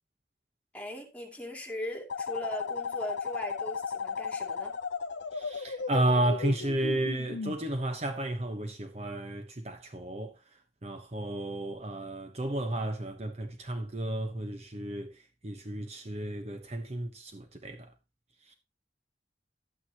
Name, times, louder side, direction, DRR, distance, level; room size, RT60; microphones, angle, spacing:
voice 1, 0.7-4.8, equal, 10° left, 2.4 m, -39 dB
sound 1, 2.1-7.6, left 5 dB, 80° left, 0.6 m, -35 dB
voice 2, 5.3-10.3 10.8-15.1 15.4-17.9 18.5-18.6, right 1 dB, 35° right, 1.0 m, -32 dB
11.5 x 9.1 x 2.9 m
head